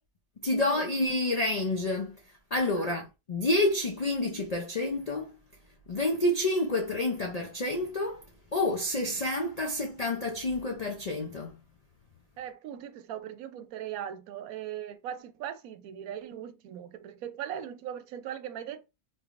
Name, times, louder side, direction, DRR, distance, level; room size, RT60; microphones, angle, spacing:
voice 1, 0.4-2.2 2.5-5.3 5.9-8.2 8.5-11.6, left 1 dB, 75° left, 0.3 m, -29 dB
voice 2, 12.4-18.9, right 10 dB, 85° right, 1.0 m, -39 dB
3.7 x 3.3 x 2.4 m
omnidirectional pair, 1.5 m